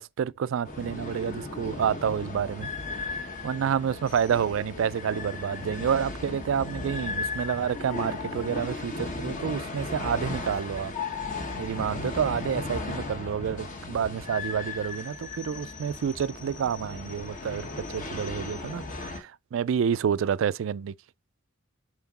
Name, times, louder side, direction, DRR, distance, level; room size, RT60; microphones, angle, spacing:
voice 1, 0.0-2.7 3.0-3.1 3.4-10.9 11.6-20.9, right 8 dB, 70° right, 0.3 m, -29 dB
sound 1, 0.6-19.2, left 3 dB, 40° left, 1.2 m, -36 dB
5.8 x 4.5 x 4.1 m
head